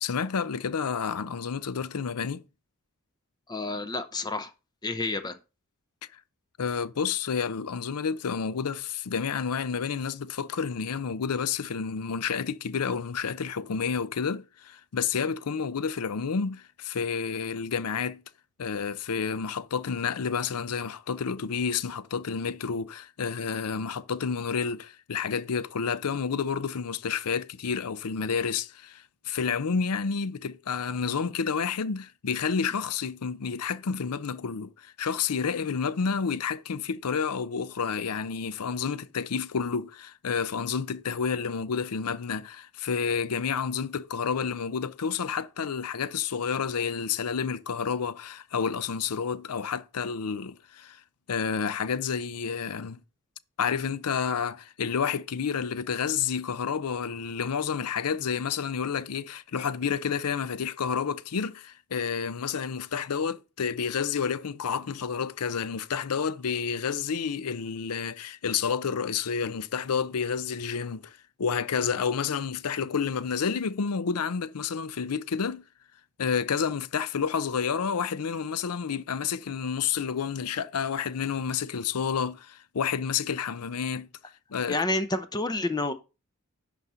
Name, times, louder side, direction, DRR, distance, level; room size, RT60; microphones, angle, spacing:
voice 1, 0.0-2.4 6.1-6.2 6.6-18.2 18.6-51.0 51.3-53.0 53.6-75.6 76.2-84.1 84.5-84.8, left 6 dB, 90° left, 0.6 m, -30 dB
voice 2, 3.5-4.5 4.8-5.4 84.7-85.9, left 2 dB, 20° left, 0.5 m, -29 dB
11.0 x 4.1 x 5.6 m
head